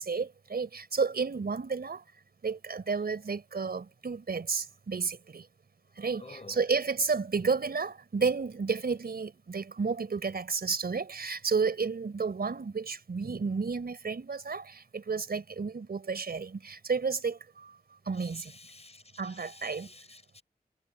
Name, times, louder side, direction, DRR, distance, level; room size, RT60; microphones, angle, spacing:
voice 1, 0.0-2.0 2.4-5.5 6.0-17.7 18.1-18.5 19.2-19.9, right 5 dB, 75° right, 4.4 m, -31 dB
voice 2, 6.2-6.6 18.2-20.4, left 3 dB, 40° left, 5.8 m, -51 dB
wide cardioid pair, 75°, 16 cm